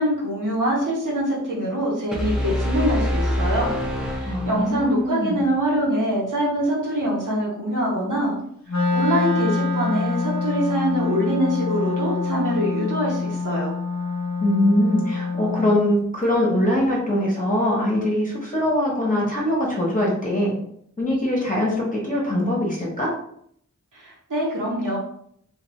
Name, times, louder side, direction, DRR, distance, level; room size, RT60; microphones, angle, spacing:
voice 1, 0.0-3.7 4.1-8.4 8.9-13.7 23.9-25.0, equal, 80° right, -5 dB, 1.1 m, -24 dB
sound 1, 2.1-5.0, left 1 dB, ahead, 0.6 m, -25 dB
voice 2, 4.3-5.5 14.4-20.5 21.0-23.2, left 1 dB, 25° left, -5 dB, 1.0 m, -22 dB
Wind instrument woodwind instrument, 8.7-15.8, left 4 dB, 60° left, 0.6 m, -25 dB
2.5 x 2.3 x 3.0 m, 0.67 s
wide cardioid pair, 45°, 31 cm